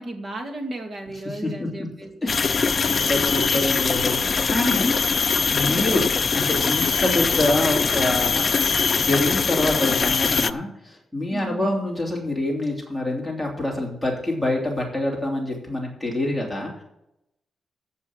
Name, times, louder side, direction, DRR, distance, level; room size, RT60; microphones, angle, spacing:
voice 1, 0.0-2.1 5.6-6.1 11.3-11.8, right 1 dB, 35° right, 3 dB, 2.2 m, -34 dB
voice 2, 1.2-1.9 2.2-4.9 5.5-6.0 6.3-8.5 8.9-16.8, left 1 dB, ahead, -3 dB, 3.0 m, -26 dB
sound 1, 2.3-10.5, left 5 dB, 35° left, 0.4 m, -22 dB
14.5 x 5.6 x 7.2 m, 0.83 s
wide cardioid pair, 175°, 0 cm